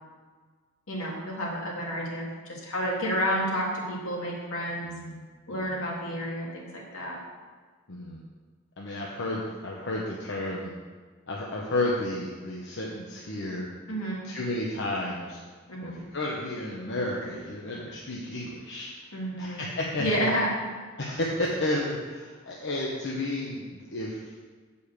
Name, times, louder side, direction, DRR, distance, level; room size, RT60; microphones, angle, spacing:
voice 1, 0.9-4.9 5.5-7.2 13.9-14.2 15.7-16.0 19.1-19.7 20.0-20.5, equal, 75° left, -3 dB, 2.4 m, -30 dB
voice 2, 4.8-5.2 5.5-5.8 7.9-8.2 8.8-10.7 11.3-13.7 14.2-15.4 15.8-20.3 21.0-24.4, left 1 dB, 60° left, -3 dB, 1.0 m, -32 dB
8.5 x 5.5 x 6.5 m, 1.5 s
head